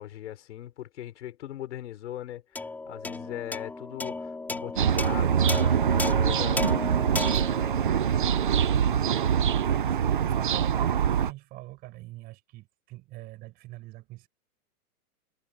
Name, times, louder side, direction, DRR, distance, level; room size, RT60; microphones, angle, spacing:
voice 1, 0.0-6.7, left 12 dB, 50° left, 4.4 m, -39 dB
sound 1, 2.5-9.2, left 3 dB, 5° left, 4.4 m, -35 dB
sound 2, 4.8-11.3, right 8 dB, 35° right, 0.5 m, -24 dB
voice 2, 8.8-14.3, right 18 dB, 20° right, 6.3 m, -44 dB
hypercardioid pair, 175°, 45 cm